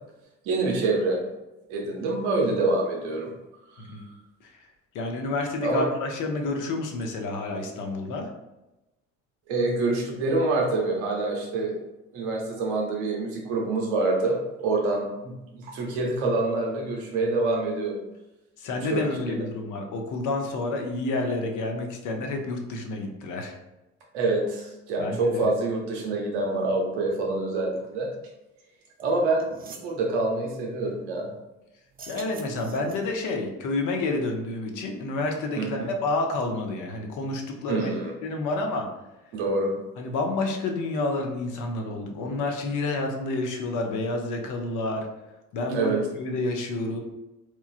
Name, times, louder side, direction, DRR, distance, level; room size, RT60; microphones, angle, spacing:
voice 1, 0.4-1.2 1.7-3.3 3.7-3.8 5.6-5.8 9.5-11.7 12.1-18.0 18.9-19.0 24.1-28.1 29.0-31.3 35.5-35.9 37.7-38.1 39.3-39.7 45.7-46.0, right 2 dB, 90° right, 0 dB, 0.7 m, -26 dB
voice 2, 4.9-8.3 18.6-23.5 25.0-25.5 32.1-37.9 38.2-38.9 40.0-45.1 45.5-47.0, left 2 dB, 60° left, 3 dB, 0.6 m, -29 dB
sound 1, 29.0-29.1 29.4-29.9 31.9-33.2, right 5 dB, 30° right, 0.3 m, -45 dB
3.0 x 2.2 x 2.4 m, 0.99 s
hypercardioid pair, 55°, 34 cm